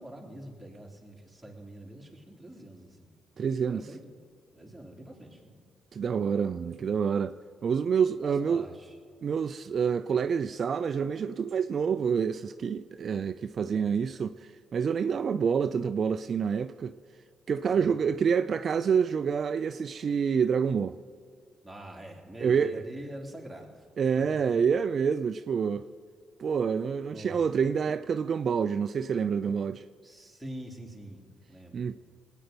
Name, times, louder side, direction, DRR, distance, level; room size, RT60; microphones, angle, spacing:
voice 1, 0.0-3.1 3.6-4.0 4.5-5.6 8.2-8.9 13.6-13.9 17.7-18.0 21.6-23.9 24.2-24.3 27.1-27.4 30.0-31.8, right 1 dB, ahead, 3.2 m, -45 dB
voice 2, 3.4-3.9 5.9-7.3 7.6-8.6 9.2-16.9 17.5-21.0 22.4-22.7 24.0-25.8 26.4-29.8 31.7-32.0, right 6 dB, 50° right, 0.4 m, -27 dB
19.0 x 9.2 x 5.2 m
cardioid pair, 90°, 0 cm